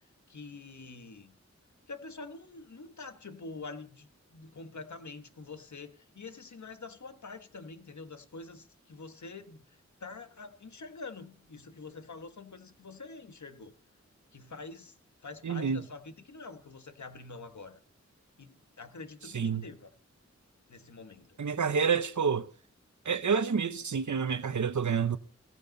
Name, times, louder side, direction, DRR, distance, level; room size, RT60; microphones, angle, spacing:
voice 1, 0.3-1.3 1.9-13.7 14.3-15.0 15.2-17.8 18.4-19.9 20.7-21.4, left 3 dB, 75° left, 1.4 m, -46 dB
voice 2, 15.4-15.8 19.3-19.6 21.4-22.5 23.0-25.2, right 6 dB, 85° right, 0.9 m, -28 dB
17.5 x 14.5 x 4.0 m
wide cardioid pair, 75°, 29 cm